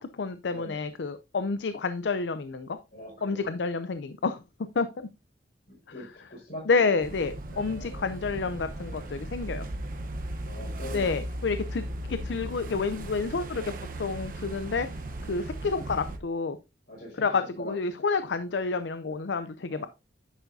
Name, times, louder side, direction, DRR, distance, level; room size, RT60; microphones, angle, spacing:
voice 1, 0.0-2.8 3.2-4.4 4.8-5.1 6.7-9.7 10.9-14.9 15.3-16.6 17.2-19.9, left 4 dB, 85° left, 12 dB, 0.5 m, -29 dB
voice 2, 2.9-3.5 5.7-6.9 7.5-8.3 10.5-11.1 16.9-17.7 19.7-19.9, left 1 dB, 60° left, -7 dB, 5.4 m, -43 dB
sound 1, 7.0-16.2, right 1 dB, 50° right, 0.9 m, -37 dB
10.0 x 6.9 x 2.7 m, 0.26 s
head